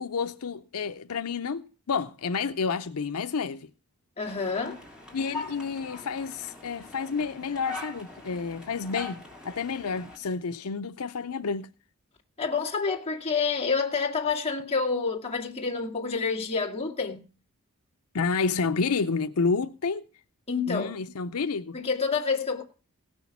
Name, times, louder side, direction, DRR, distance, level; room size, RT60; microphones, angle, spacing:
voice 1, 0.0-3.7 5.1-11.7 18.1-20.1 20.7-21.8, left 5 dB, 80° left, 0.6 m, -30 dB
voice 2, 4.2-4.8 12.4-17.2 20.5-20.9 21.7-22.6, left 5 dB, 30° left, 2.2 m, -28 dB
sound 1, 4.2-10.2, left 3 dB, 5° right, 3.7 m, -42 dB
17.5 x 6.3 x 7.1 m
head